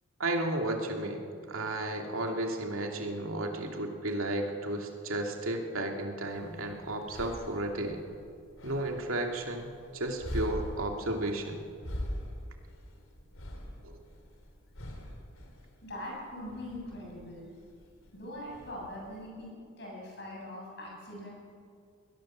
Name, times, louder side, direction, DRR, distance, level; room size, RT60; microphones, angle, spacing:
voice 1, 0.2-8.0 8.6-11.6 13.8-14.0, right 1 dB, 85° right, 2 dB, 2.6 m, -33 dB
sound 1, 6.2-19.3, equal, 75° left, 3.7 m, -43 dB
voice 2, 15.8-17.5 18.1-21.3, left 1 dB, 55° left, -2 dB, 7.9 m, -42 dB
22.0 x 19.0 x 7.5 m, 2.3 s
head